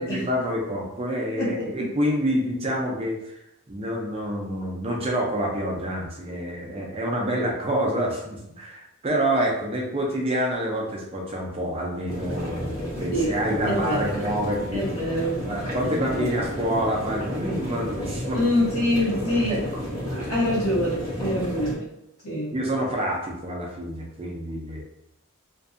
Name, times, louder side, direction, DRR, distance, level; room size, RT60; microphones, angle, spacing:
voice 1, 0.0-3.3 3.7-14.9 15.4-18.4 19.5-19.6 21.2-21.4 22.5-24.8, equal, 25° right, -1 dB, 0.4 m, -27 dB
voice 2, 1.4-1.9 13.1-13.4 13.6-14.3 14.7-15.4 15.8-16.3 18.3-19.6 20.1-21.7 22.2-22.5, left 1 dB, 75° left, -6 dB, 1.1 m, -26 dB
sound 1, 12.1-21.7, equal, 15° left, 1.1 m, -32 dB
2.5 x 2.3 x 2.5 m, 0.83 s
head